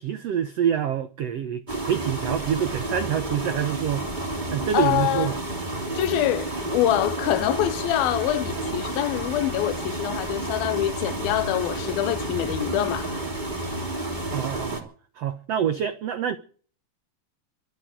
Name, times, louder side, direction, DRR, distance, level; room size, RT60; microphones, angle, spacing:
voice 1, 0.0-4.1 4.5-5.4 14.3-14.9 15.2-16.4, right 9 dB, 85° right, 1.4 m, -26 dB
sound 1, 1.7-14.8, right 2 dB, 15° right, 2.3 m, -31 dB
voice 2, 4.7-5.3 6.0-13.1, left 13 dB, 75° left, 2.7 m, -25 dB
24.0 x 8.5 x 6.1 m
omnidirectional pair, 4.4 m